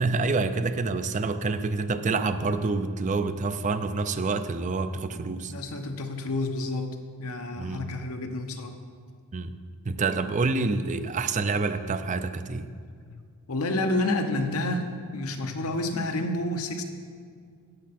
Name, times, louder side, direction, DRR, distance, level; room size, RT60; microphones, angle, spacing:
voice 1, 0.0-5.5 7.5-7.8 9.3-9.5 9.9-12.7, right 3 dB, 35° right, 10 dB, 0.5 m, -27 dB
voice 2, 5.2-8.8 12.8-13.1 13.5-16.8, left 2 dB, 85° left, 5 dB, 1.0 m, -30 dB
12.0 x 8.5 x 4.2 m, 2.1 s
head